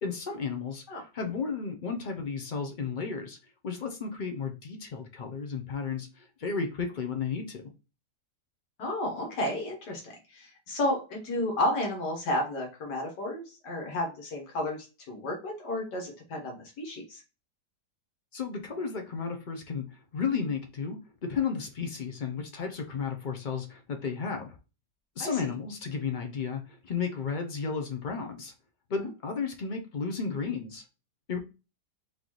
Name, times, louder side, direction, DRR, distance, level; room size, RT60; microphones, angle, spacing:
voice 1, 0.0-0.8 1.1-3.4 3.6-7.6 18.3-24.6 25.2-28.5 28.9-30.8 31.3-31.4, left 5 dB, 60° left, 4 dB, 0.5 m, -33 dB
voice 2, 8.8-17.2 25.2-25.3 29.0-29.1, left 1 dB, 80° left, 0 dB, 1.8 m, -32 dB
3.9 x 3.6 x 3.0 m, 0.30 s
omnidirectional pair, 1.8 m